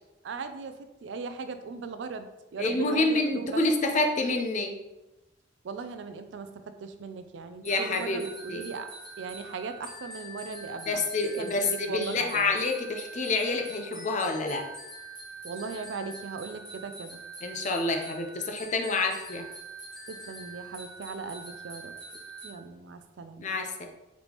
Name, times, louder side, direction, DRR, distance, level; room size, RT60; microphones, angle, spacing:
voice 1, 0.2-3.6 5.6-8.9 9.2-11.0 11.4-12.5 15.4-17.2 20.1-21.9 22.4-23.5, right 4 dB, 65° right, 9 dB, 0.3 m, -38 dB
voice 2, 2.6-4.7 7.6-8.2 8.5-8.7 10.9-14.6 17.4-19.5 23.4-23.9, left 3 dB, 40° left, 3 dB, 0.5 m, -28 dB
sound 1, 7.7-22.5, right 2 dB, 5° left, 1.0 m, -44 dB
4.0 x 3.5 x 2.9 m, 0.99 s
head